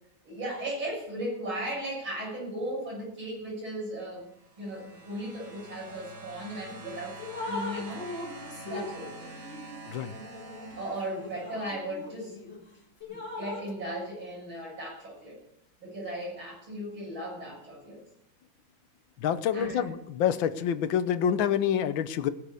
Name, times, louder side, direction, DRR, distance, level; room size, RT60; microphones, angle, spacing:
voice 1, 0.2-4.3 4.6-7.2 7.5-8.1 8.6-9.3 10.8-12.4 13.1-15.4 15.8-18.0 19.5-19.9, right 1 dB, 65° right, -5 dB, 8.1 m, -36 dB
sound 1, 4.2-11.9 13.0-13.1, right 2 dB, 50° right, 2.6 m, -47 dB
Drip, 6.6-6.8 7.2-12.6 13.0-13.7, left 2 dB, 30° left, 2.0 m, -40 dB
voice 2, 19.2-22.3, left 9 dB, 70° left, 13 dB, 1.5 m, -27 dB
19.0 x 6.5 x 8.4 m, 0.80 s
omnidirectional pair, 2.3 m